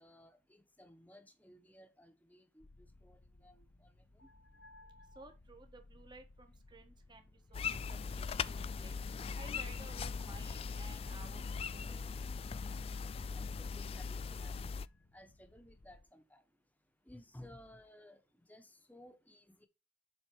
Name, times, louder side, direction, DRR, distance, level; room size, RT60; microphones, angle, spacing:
voice 1, 0.0-3.5 3.8-4.3 13.3-14.6 15.1-16.4 17.1-19.7, left 1 dB, 10° left, 1.1 m, -58 dB
sound 1, 2.6-16.0, left 2 dB, 80° left, 0.9 m, -61 dB
voice 2, 5.1-9.0 9.4-11.4 11.7-12.0, right 3 dB, 25° right, 1.4 m, -56 dB
sound 2, 7.5-14.9, left 5 dB, 35° left, 0.3 m, -40 dB
7.7 x 4.4 x 4.7 m
head